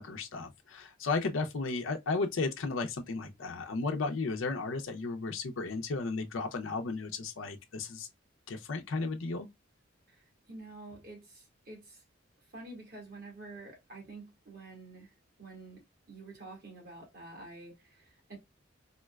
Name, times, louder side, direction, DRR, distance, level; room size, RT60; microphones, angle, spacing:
voice 1, 0.0-8.1 8.5-9.5, left 3 dB, 80° left, 0.5 m, -34 dB
voice 2, 10.1-12.0 12.5-18.4, right 2 dB, 50° right, 1.7 m, -49 dB
3.8 x 2.1 x 2.2 m
head